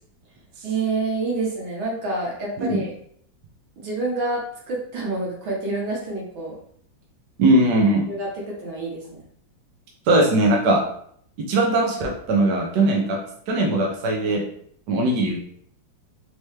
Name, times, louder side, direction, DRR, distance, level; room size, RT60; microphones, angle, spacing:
voice 1, 0.6-2.9 3.8-4.4 4.7-6.6 8.1-9.3, right 3 dB, 80° right, -3 dB, 2.2 m, -27 dB
voice 2, 7.4-8.0 10.1-10.8 11.5-13.2 13.5-14.4 14.9-15.4, right 2 dB, 65° right, -1 dB, 1.3 m, -19 dB
4.4 x 3.3 x 3.2 m, 0.64 s
omnidirectional pair, 2.1 m